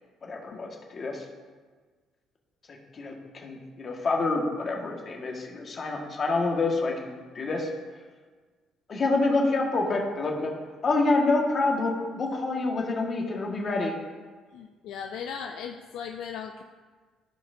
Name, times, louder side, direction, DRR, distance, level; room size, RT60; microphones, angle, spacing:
voice 1, 0.2-1.2 2.7-7.7 8.9-10.5 10.8-13.9, left 3 dB, 45° left, 0 dB, 1.6 m, -27 dB
voice 2, 14.5-16.6, left 7 dB, 80° left, 3 dB, 0.4 m, -37 dB
15.0 x 5.0 x 2.7 m, 1.5 s
supercardioid pair, 80°, 0 cm